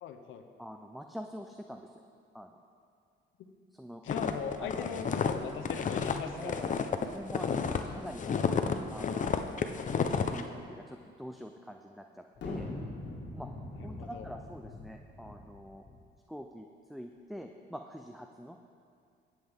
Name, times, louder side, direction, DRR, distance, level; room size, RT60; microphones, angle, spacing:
voice 1, 0.0-0.4 4.0-6.7 7.9-8.5 13.7-14.3, left 7 dB, 80° left, 6 dB, 0.8 m, -40 dB
voice 2, 0.6-2.0 2.3-2.6 3.7-4.0 4.6-4.9 6.2-8.5 8.9-12.7 13.3-13.5 13.8-15.8 16.3-18.6, equal, ahead, 4 dB, 0.5 m, -45 dB
sound 1, 4.1-7.8 8.1-10.4, left 6 dB, 40° left, 0.6 m, -30 dB
sound 2, 12.4-16.0, left 2 dB, 65° left, 1.7 m, -42 dB
17.5 x 7.5 x 3.5 m, 2.4 s
cardioid pair, 90°, 20 cm